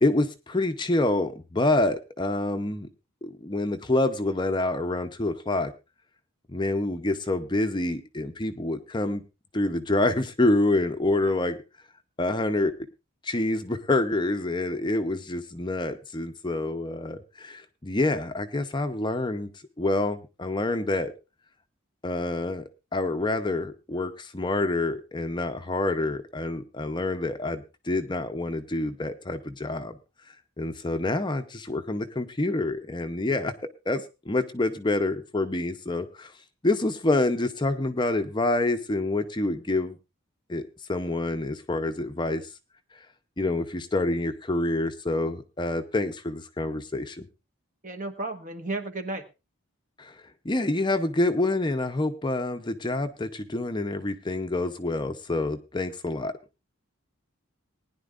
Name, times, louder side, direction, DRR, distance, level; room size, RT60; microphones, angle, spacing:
voice 1, 0.0-2.9 3.2-5.7 6.5-9.2 9.5-11.6 12.2-12.7 13.2-19.5 19.8-21.1 22.0-22.6 22.9-30.0 30.6-33.5 33.9-36.3 36.6-40.0 40.5-42.4 43.4-47.2 50.0-50.2 50.4-56.3, left 2 dB, 20° left, 8 dB, 0.7 m, -27 dB
voice 2, 47.8-49.2, right 2 dB, 40° right, 7 dB, 1.3 m, -33 dB
20.0 x 10.5 x 2.5 m, 0.28 s
head